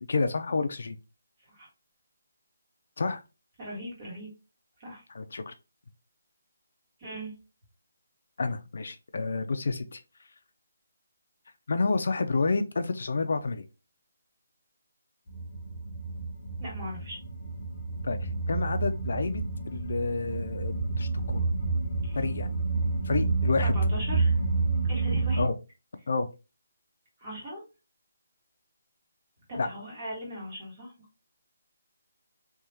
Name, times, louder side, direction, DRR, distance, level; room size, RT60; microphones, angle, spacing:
voice 1, 0.1-1.0 3.0-3.2 5.1-5.5 8.4-10.0 11.7-13.7 18.0-21.5 22.1-22.5 23.0-23.7 25.4-25.5 26.1-26.3 29.6-29.7, left 3 dB, 50° left, 9 dB, 0.4 m, -29 dB
voice 2, 3.6-4.3 4.8-5.0 7.0-7.3 16.6-17.2 22.0-22.2 23.6-24.4 24.8-25.5 27.2-27.6 29.5-31.1, equal, 25° right, -4 dB, 1.6 m, -39 dB
sound 1, 15.3-25.4, right 3 dB, 20° left, 1.2 m, -29 dB
3.4 x 2.7 x 2.8 m, 0.28 s
hypercardioid pair, 180°, 0 cm